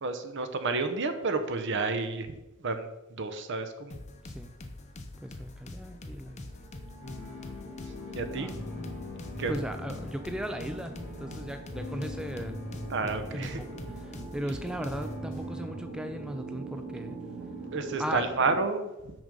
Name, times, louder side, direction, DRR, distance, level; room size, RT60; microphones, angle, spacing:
voice 1, 0.0-4.0 8.1-8.5 9.4-9.5 12.9-13.6 17.7-19.1, right 3 dB, 60° right, 8 dB, 0.8 m, -31 dB
sound 1, 3.9-15.2, left 2 dB, 35° left, 0.7 m, -45 dB
voice 2, 5.2-6.5 8.3-8.9 9.5-12.6 13.3-17.2 18.0-18.2, equal, 5° right, 7 dB, 0.3 m, -37 dB
sound 2, 5.5-18.6, right 3 dB, 30° right, 2.0 m, -44 dB
sound 3, 7.0-14.7 14.9-15.8, left 2 dB, 60° left, 1.7 m, -42 dB
6.1 x 5.2 x 5.3 m, 1.0 s
head